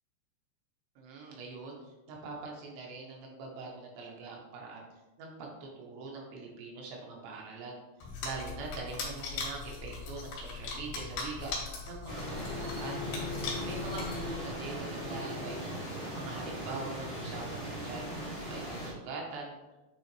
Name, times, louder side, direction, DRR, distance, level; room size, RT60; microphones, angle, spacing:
voice 1, 1.0-4.9 5.2-7.8 8.2-13.0 13.6-18.0 18.5-19.6, right 3 dB, 80° right, -1 dB, 3.2 m, -43 dB
sound 1, 8.0-14.6, left 4 dB, 70° left, 3.5 m, -40 dB
sound 2, 12.1-18.9, right 1 dB, 35° left, 1.1 m, -39 dB
Bowed string instrument, 12.4-17.5, left 7 dB, 90° left, 3.1 m, -44 dB
9.4 x 3.8 x 3.2 m, 1.1 s
omnidirectional pair, 5.1 m